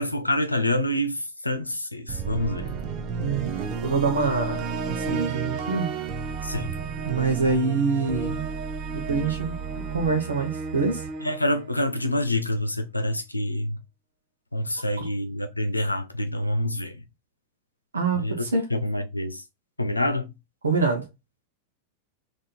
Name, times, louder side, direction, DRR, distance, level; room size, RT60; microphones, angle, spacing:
voice 1, 0.0-2.7 6.4-6.7 11.2-13.8 14.5-17.0 18.1-18.5 18.7-19.4 19.8-20.3, left 1 dB, 85° left, 0.7 m, -27 dB
sound 1, 2.1-12.3, right 5 dB, 35° right, 0.8 m, -32 dB
voice 2, 3.2-3.5 3.8-5.9 7.0-8.4 8.9-9.5 9.9-11.1 15.0-15.1 17.9-18.6 20.6-21.1, right 4 dB, 70° right, 1.1 m, -25 dB
3.8 x 3.0 x 4.3 m
figure-of-eight pair, 90°, 0 cm